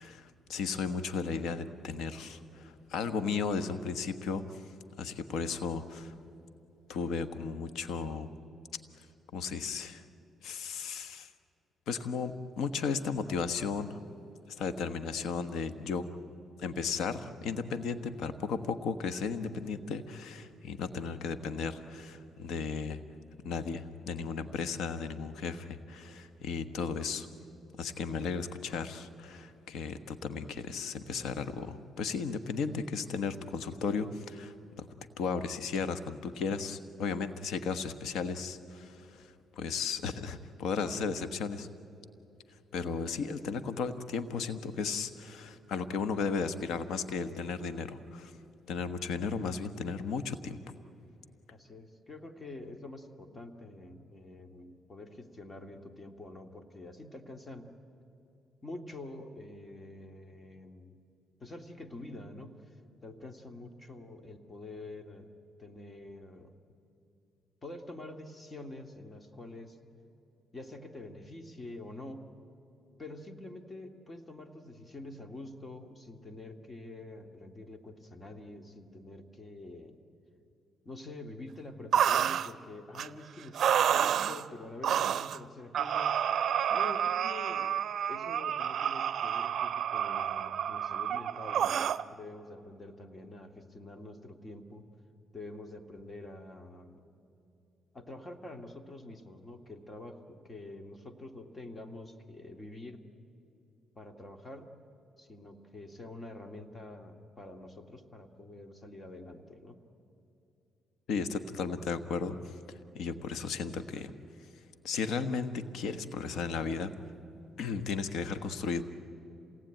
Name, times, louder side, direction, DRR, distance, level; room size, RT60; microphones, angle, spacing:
voice 1, 0.0-4.6 5.0-6.2 6.9-8.3 9.3-10.0 10.4-11.3 11.9-14.0 14.5-16.1 16.6-23.0 23.4-27.3 27.8-34.9 35.2-41.7 42.7-48.3 48.7-50.6 111.1-112.5 112.9-114.1 114.8-116.9 117.6-118.8, left 5 dB, 80° left, 10 dB, 1.2 m, -35 dB
voice 2, 51.5-57.7 58.6-61.0 61.4-62.8 63.0-65.3 65.6-66.6 67.6-69.8 70.5-72.3 73.0-80.0 80.8-86.3 86.7-94.9 95.3-97.0 97.9-103.1 104.0-104.7 105.2-109.8, left 2 dB, 30° left, 6 dB, 2.1 m, -46 dB
sound 1, 81.9-82.5 82.9-83.1 83.5-84.4 84.8-85.4 85.7-92.0, right 9 dB, 65° right, 0.6 m, -29 dB
27.0 x 18.5 x 9.1 m, 2.8 s
cardioid pair, 90°, 0 cm